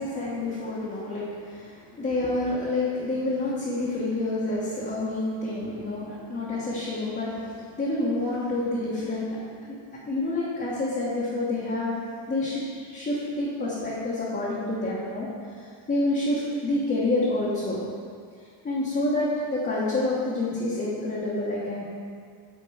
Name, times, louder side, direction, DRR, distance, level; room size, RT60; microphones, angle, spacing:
voice 1, 0.0-9.8 10.1-12.0 12.3-15.3 15.5-17.8 18.6-21.8, left 2 dB, 20° left, -8 dB, 1.2 m, -28 dB
7.9 x 3.8 x 4.9 m, 2.2 s
cardioid pair, 135°, 46 cm